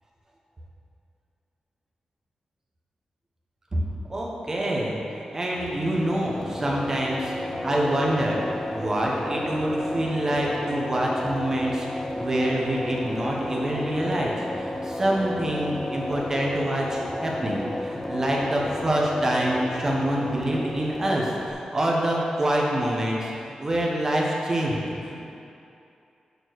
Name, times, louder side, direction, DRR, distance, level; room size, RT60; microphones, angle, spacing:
voice 1, 4.1-8.4 8.7-23.3 23.6-25.2, right 1 dB, 25° right, -3 dB, 1.0 m, -26 dB
sound 1, 5.5-21.5, left 1 dB, 15° left, 0.5 m, -33 dB
6.8 x 4.5 x 6.2 m, 2.7 s
wide cardioid pair, 175°, 2 cm